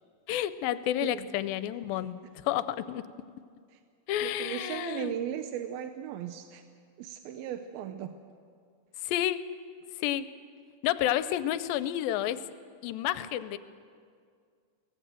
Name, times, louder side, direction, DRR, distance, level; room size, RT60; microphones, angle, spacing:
voice 1, 0.3-3.1 4.1-5.1 9.0-9.5 10.0-10.3 10.8-12.5 12.8-13.6, left 12 dB, 80° left, 14 dB, 2.4 m, -30 dB
voice 2, 4.2-6.6 7.0-8.1, right 10 dB, 85° right, 8 dB, 2.6 m, -37 dB
23.5 x 18.0 x 7.7 m, 2.2 s
omnidirectional pair, 4.2 m